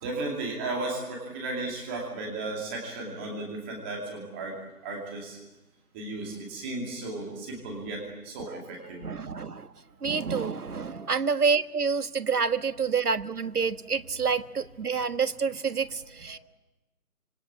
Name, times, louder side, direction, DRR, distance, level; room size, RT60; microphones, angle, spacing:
voice 1, 0.0-4.6 4.8-5.4 5.9-9.4 10.6-11.1 12.4-12.6 16.3-16.4, right 2 dB, 10° right, 0 dB, 2.5 m, -35 dB
voice 2, 9.0-9.7 10.0-16.4, right 5 dB, 75° right, 12 dB, 1.5 m, -28 dB
26.0 x 25.5 x 8.6 m, 1.0 s
figure-of-eight pair, 170°, 46 cm